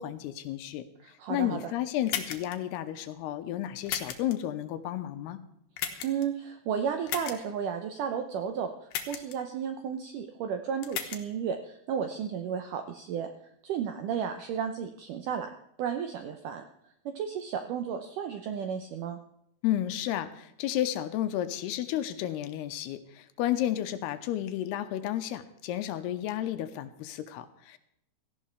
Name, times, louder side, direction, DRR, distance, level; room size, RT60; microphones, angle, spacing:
voice 1, 0.0-0.9 1.3-5.4 19.6-27.8, left 12 dB, 85° left, 10 dB, 2.7 m, -32 dB
voice 2, 1.0-1.7 6.0-13.3 13.6-15.5 15.8-16.6 17.1-19.2, right 7 dB, 80° right, 6 dB, 1.8 m, -33 dB
sound 1, 2.1-2.6 3.9-4.3 5.8-6.2 7.1-7.4 8.9-9.4 10.8-11.2, left 9 dB, 65° left, 2.5 m, -34 dB
17.5 x 14.5 x 3.4 m, 0.77 s
omnidirectional pair, 4.8 m